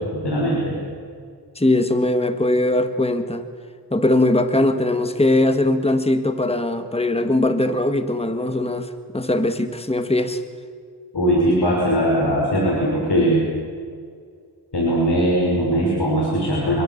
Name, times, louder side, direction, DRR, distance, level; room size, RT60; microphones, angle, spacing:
voice 1, 0.1-0.7 11.1-13.4 14.7-16.8, equal, 75° left, -3 dB, 6.1 m, -20 dB
voice 2, 1.6-3.4 3.9-10.4, left 1 dB, 15° left, 8 dB, 1.8 m, -20 dB
28.0 x 21.0 x 7.4 m, 2.1 s
wide cardioid pair, 60°, 41 cm